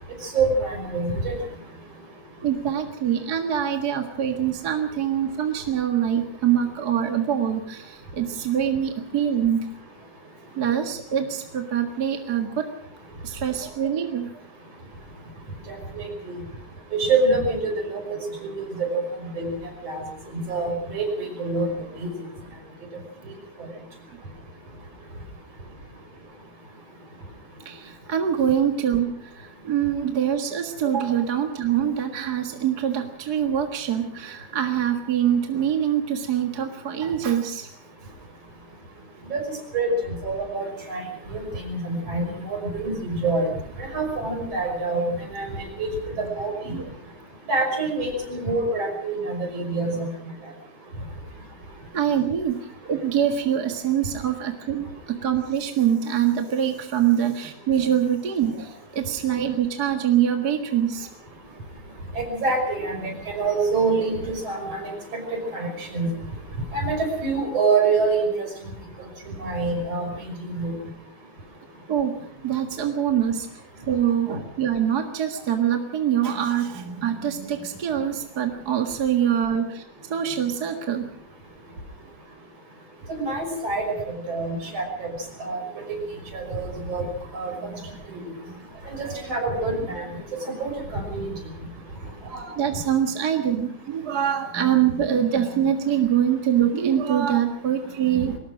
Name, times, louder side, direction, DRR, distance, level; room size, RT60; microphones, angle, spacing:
voice 1, 0.3-1.3 15.7-16.1 16.9-18.0 18.4-18.5 18.9-19.5 19.8-20.0 20.3-21.7 22.0-22.1 39.3-39.4 39.7-39.9 40.2-41.0 41.3-43.5 43.8-45.9 46.4-46.7 47.5-50.1 62.2-64.9 65.5-66.1 66.7-68.5 69.4-70.7 83.1-83.9 84.3-85.1 85.4-85.6 86.3-87.0 87.3-87.5 89.0-90.0 90.6-91.3, right 3 dB, 55° right, 3 dB, 6.9 m, -26 dB
voice 2, 2.4-9.7 10.6-12.7 13.2-14.3 27.7-37.7 46.7-46.9 51.9-61.1 71.9-72.2 72.4-73.5 73.9-79.8 80.1-81.1 87.6-89.3 92.2-98.4, right 9 dB, 40° right, 4 dB, 1.8 m, -24 dB
22.0 x 19.0 x 6.2 m, 0.65 s
omnidirectional pair, 3.3 m